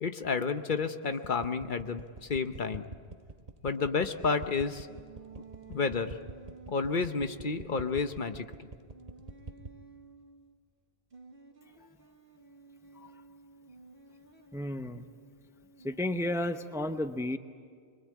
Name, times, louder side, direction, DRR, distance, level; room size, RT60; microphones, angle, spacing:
voice 1, 0.0-2.8 3.6-4.9 5.7-6.2 6.7-8.5, left 4 dB, 55° left, 9 dB, 1.0 m, -31 dB
sound 1, 1.2-9.8, right 3 dB, 40° right, 1.1 m, -44 dB
sound 2, 4.8-10.5 11.1-16.4, right 4 dB, 60° right, 1.9 m, -54 dB
voice 2, 14.5-15.0 15.8-17.4, left 1 dB, 5° right, 8 dB, 0.7 m, -32 dB
24.5 x 22.5 x 8.5 m, 2.1 s
omnidirectional pair, 1.1 m